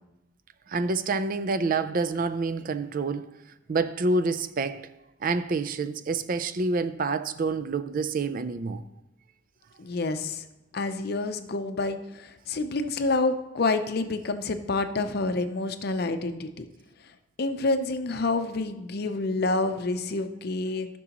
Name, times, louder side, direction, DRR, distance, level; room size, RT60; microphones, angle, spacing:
voice 1, 0.7-3.3 3.7-4.9 5.2-8.8, right 3 dB, 45° right, 0.4 m, -27 dB
voice 2, 9.8-10.4 10.7-16.6 17.4-20.9, left 3 dB, 50° left, 0.6 m, -28 dB
13.5 x 6.1 x 2.9 m
head